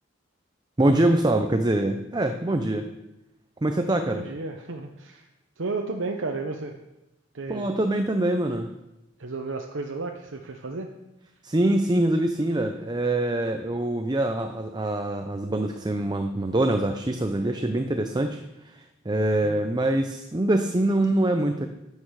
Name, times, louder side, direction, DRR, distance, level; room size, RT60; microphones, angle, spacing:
voice 1, 0.8-2.9 3.6-4.2 7.5-8.7 11.4-18.4 19.1-21.7, right 1 dB, 20° right, 6 dB, 0.6 m, -24 dB
voice 2, 4.1-5.3 5.6-6.7 7.3-7.7 9.2-10.9 19.4-19.7, right 3 dB, 75° right, 3 dB, 0.9 m, -33 dB
12.0 x 8.6 x 4.8 m, 0.95 s
head